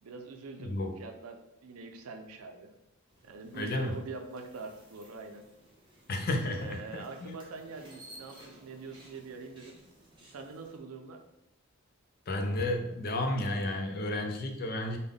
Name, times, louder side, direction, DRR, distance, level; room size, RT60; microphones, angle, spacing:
voice 1, 0.0-2.7 3.2-5.5 6.6-9.8 10.3-11.2, right 4 dB, 85° right, 5 dB, 0.5 m, -44 dB
voice 2, 0.6-1.0 3.5-4.0 6.1-7.3 12.3-15.0, left 1 dB, 45° left, 4 dB, 0.4 m, -32 dB
sound 1, 3.1-10.8, right 1 dB, 20° right, 0.9 m, -56 dB
3.5 x 2.2 x 3.6 m, 0.87 s
head